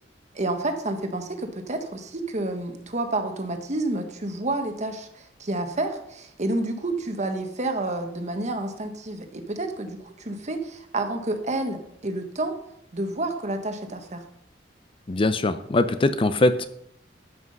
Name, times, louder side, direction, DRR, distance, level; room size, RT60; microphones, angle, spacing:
voice 1, 0.3-12.6 12.9-14.2, right 2 dB, 40° right, 6 dB, 1.3 m, -29 dB
voice 2, 15.1-16.7, left 2 dB, 30° left, 12 dB, 0.5 m, -22 dB
12.5 x 6.1 x 5.4 m, 0.76 s
head